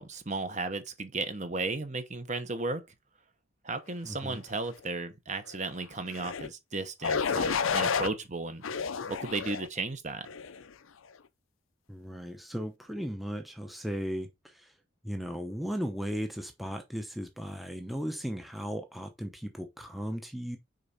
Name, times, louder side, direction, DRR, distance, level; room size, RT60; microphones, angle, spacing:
voice 1, 0.0-2.8 3.6-8.6 9.1-10.3, right 3 dB, 35° right, 1.0 m, -34 dB
voice 2, 4.0-4.4 11.9-14.7 15.0-20.6, equal, ahead, 0.7 m, -36 dB
sound 1, 6.1-6.5 7.0-8.1 8.6-9.7 10.3-10.6, left 6 dB, 80° left, 0.6 m, -30 dB
6.6 x 4.5 x 4.1 m
head